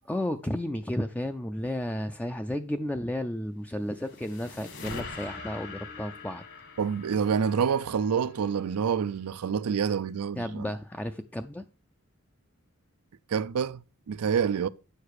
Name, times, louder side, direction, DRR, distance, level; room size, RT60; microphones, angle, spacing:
voice 1, 0.1-6.4 10.4-11.7, left 1 dB, 5° left, 0.4 m, -33 dB
sound 1, 3.6-9.0, left 3 dB, 55° left, 1.8 m, -43 dB
voice 2, 6.8-10.7 13.3-14.7, right 7 dB, 85° right, 0.4 m, -27 dB
9.3 x 6.6 x 4.8 m
head